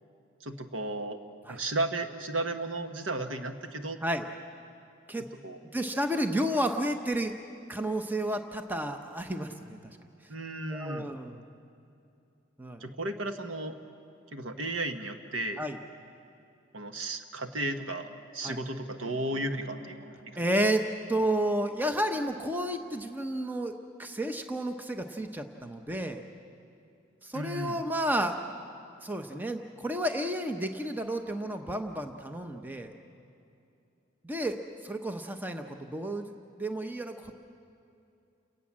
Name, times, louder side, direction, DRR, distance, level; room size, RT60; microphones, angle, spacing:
voice 1, 0.4-1.2 1.5-4.0 5.4-5.6 10.3-11.1 12.8-13.8 14.3-15.6 16.7-20.4 27.3-27.8, right 2 dB, 75° right, 6 dB, 1.4 m, -34 dB
voice 2, 5.7-7.3 7.7-10.0 10.7-11.4 12.6-12.8 15.6-15.8 18.4-18.6 20.4-20.8 21.1-23.7 24.0-26.2 27.2-28.4 29.0-32.9 34.2-37.3, right 1 dB, 10° right, 6 dB, 0.9 m, -31 dB
29.5 x 18.5 x 7.5 m, 2.6 s
head